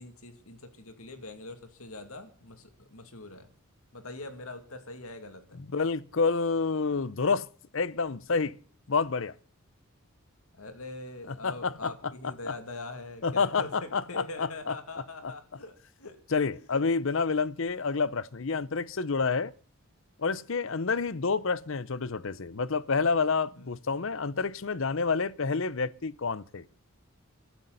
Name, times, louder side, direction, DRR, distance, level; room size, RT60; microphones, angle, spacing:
voice 1, 0.0-3.5 3.9-5.6 10.5-16.2 16.7-16.8 20.7-21.0 23.6-23.7, left 2 dB, 80° left, 2.5 m, -43 dB
voice 2, 5.7-7.5 7.7-8.6 8.9-9.3 11.3-12.5 13.2-14.7 15.2-15.3 16.3-19.5 20.2-26.7, left 4 dB, 60° left, 0.7 m, -29 dB
22.5 x 12.0 x 4.1 m
head